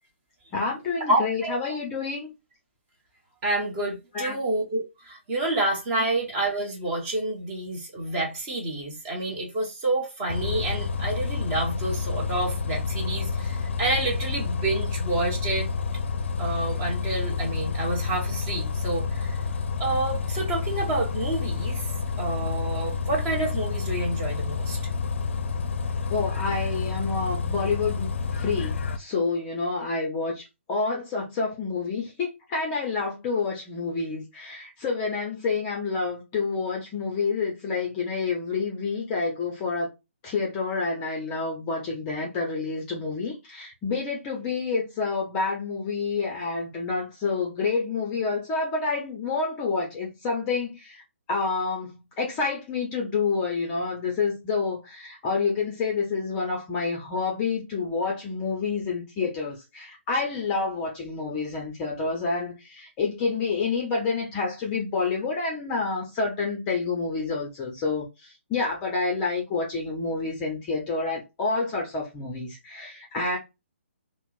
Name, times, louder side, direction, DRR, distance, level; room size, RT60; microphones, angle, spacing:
voice 1, 0.5-2.3 4.1-4.4 26.1-39.9 40.2-51.0 51.3-73.4, left 4 dB, 15° left, 0.6 m, -28 dB
voice 2, 1.1-1.6 3.4-15.7 16.4-19.5 19.8-21.9 22.2-24.8, right 2 dB, 20° right, 0.9 m, -28 dB
Bus, 10.3-29.0, left 5 dB, 65° left, 0.5 m, -29 dB
4.2 x 2.0 x 2.4 m
hypercardioid pair, 165°, 7 cm